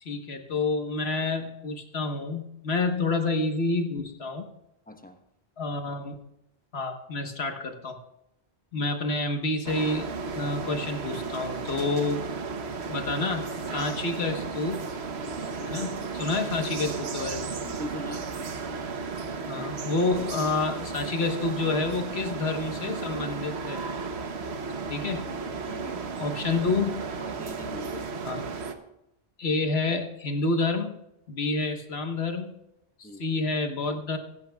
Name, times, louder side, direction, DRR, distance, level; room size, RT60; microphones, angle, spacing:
voice 1, 0.0-4.5 5.6-6.2 6.7-8.0 8.7-10.1 10.3-12.2 12.9-14.9 15.7-17.5 19.5-23.8 24.9-25.2 26.2-27.0 28.2-28.4 29.4-30.9 31.3-32.5 33.0-34.2, left 3 dB, 75° left, 5 dB, 1.5 m, -28 dB
voice 2, 4.9-5.2 8.7-8.9 15.4-15.8 17.6-18.3 19.5-19.7 25.6-26.6 27.2-28.1 33.0-33.2, left 1 dB, 10° left, 5 dB, 1.0 m, -42 dB
sound 1, 9.6-28.7, right 4 dB, 80° right, 1.2 m, -34 dB
16.5 x 15.0 x 2.3 m, 0.84 s
omnidirectional pair, 1.1 m